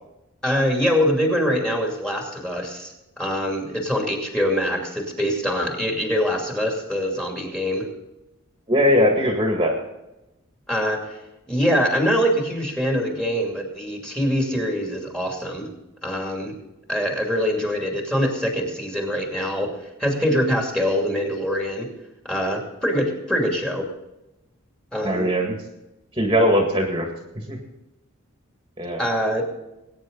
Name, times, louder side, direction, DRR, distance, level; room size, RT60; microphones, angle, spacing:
voice 1, 0.4-7.9 10.7-11.2 11.5-15.7 16.0-16.5 16.9-21.9 22.2-23.9 24.9-25.3 29.0-29.5, equal, 5° left, 1 dB, 2.6 m, -24 dB
voice 2, 8.7-9.8 25.0-25.6 26.1-27.1 27.5-27.6 28.8-29.0, equal, 20° right, 1 dB, 1.9 m, -20 dB
21.0 x 9.6 x 4.0 m, 0.94 s
head